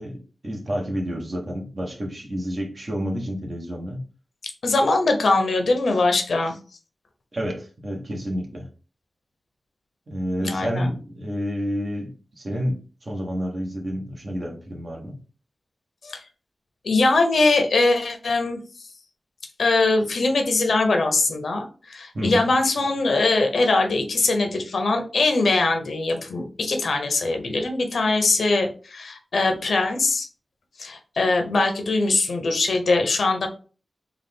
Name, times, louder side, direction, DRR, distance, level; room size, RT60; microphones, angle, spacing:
voice 1, 0.0-4.0 7.3-8.7 10.1-15.2 22.1-22.5, equal, 45° right, 1.1 m, -29 dB
voice 2, 4.6-6.6 10.4-10.9 16.0-16.2 16.8-18.6 19.6-30.3 30.8-33.5, left 3 dB, 80° left, 0.7 m, -22 dB
4.0 x 2.3 x 3.5 m
wide cardioid pair, 80°, 0 cm